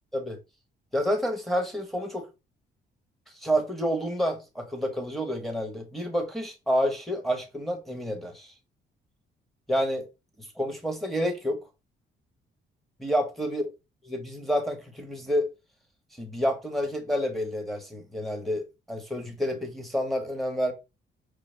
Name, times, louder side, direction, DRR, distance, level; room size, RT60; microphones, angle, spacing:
voice 1, 0.9-2.3 3.4-8.5 9.7-10.1 10.4-11.6 13.0-13.7 14.0-15.5 16.2-20.7, equal, ahead, 1.1 m, -29 dB
5.0 x 2.2 x 3.3 m
cardioid pair, 90°, 20 cm